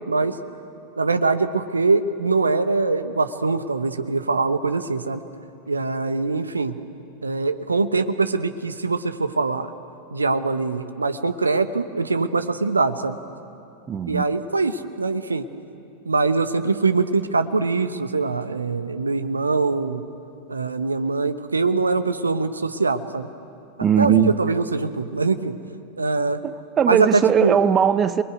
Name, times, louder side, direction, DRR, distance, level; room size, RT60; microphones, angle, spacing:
voice 1, 1.0-5.2 5.7-6.8 7.2-9.7 10.1-13.2 14.1-15.4 16.1-20.0 20.5-23.3 24.0-25.5 26.0-26.4 26.9-27.6, right 3 dB, 80° right, 1.0 m, -23 dB
voice 2, 13.9-14.2 23.8-24.3 26.4-28.2, right 8 dB, 25° right, 0.8 m, -19 dB
28.5 x 21.0 x 9.4 m
figure-of-eight pair, 90°, 0 cm